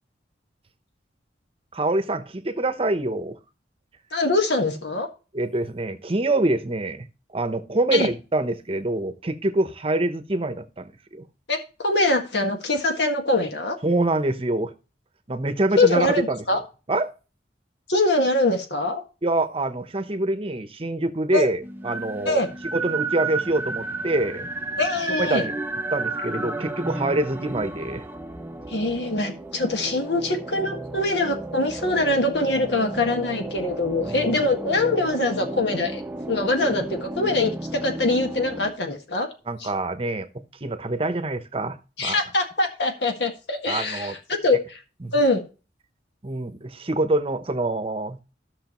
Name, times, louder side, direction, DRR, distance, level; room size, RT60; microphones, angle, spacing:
voice 1, 1.7-3.4 5.3-7.1 7.3-11.3 13.8-14.7 15.3-16.6 16.9-17.1 19.2-22.4 22.7-24.5 25.1-25.6 25.9-28.0 34.0-34.4 39.5-42.2 43.7-44.1 45.0-45.1 46.2-48.2, right 2 dB, 35° right, 0.9 m, -25 dB
voice 2, 4.1-5.1 7.9-8.1 11.5-13.8 15.8-16.6 17.9-19.0 21.3-21.5 22.3-22.5 24.8-25.4 28.7-36.0 36.3-39.3 39.6-39.7 42.0-44.2 44.4-44.8 45.1-45.4, left 2 dB, 70° left, 1.8 m, -23 dB
sound 1, 21.6-38.7, right 3 dB, 10° right, 0.7 m, -33 dB
14.0 x 6.3 x 3.1 m
head